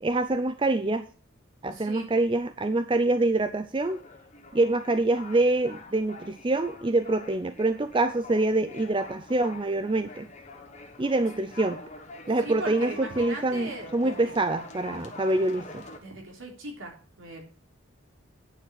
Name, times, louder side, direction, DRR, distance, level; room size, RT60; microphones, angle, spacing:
voice 1, 0.0-1.1 1.6-4.0 4.5-10.3 11.0-11.8 12.3-15.8, right 2 dB, 25° right, 10 dB, 0.5 m, -25 dB
voice 2, 1.7-2.1 12.4-14.3 16.0-16.9 17.2-17.4, right 1 dB, 70° right, 0 dB, 3.5 m, -39 dB
sound 1, 3.8-16.0, left 2 dB, 35° left, 1.4 m, -45 dB
9.5 x 5.5 x 7.5 m, 0.40 s
head